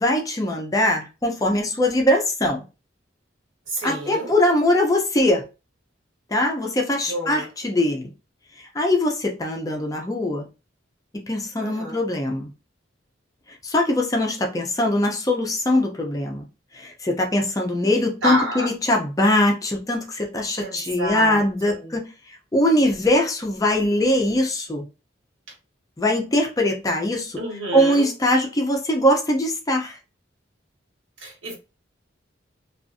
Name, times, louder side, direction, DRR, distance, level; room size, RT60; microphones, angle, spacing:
voice 1, 0.0-2.6 3.8-5.5 6.3-8.1 8.6-10.5 11.3-12.5 13.6-16.5 16.7-24.9 26.0-27.4 27.7-30.0, left 1 dB, 20° left, 0.4 m, -22 dB
voice 2, 3.7-4.3 7.1-7.5 11.6-12.0 18.2-18.7 20.6-21.9 27.4-28.1 31.2-31.5, equal, 85° right, 1.2 m, -28 dB
2.4 x 2.3 x 2.4 m
head